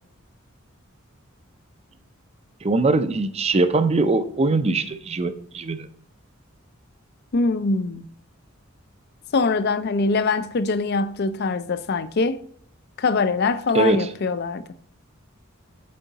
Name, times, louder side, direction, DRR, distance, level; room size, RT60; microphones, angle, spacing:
voice 1, 2.6-5.9 13.7-14.1, right 3 dB, 30° right, 0.5 m, -21 dB
voice 2, 7.3-8.1 9.3-12.4 13.0-14.6, left 4 dB, 50° left, 0.5 m, -23 dB
7.6 x 4.6 x 4.0 m
head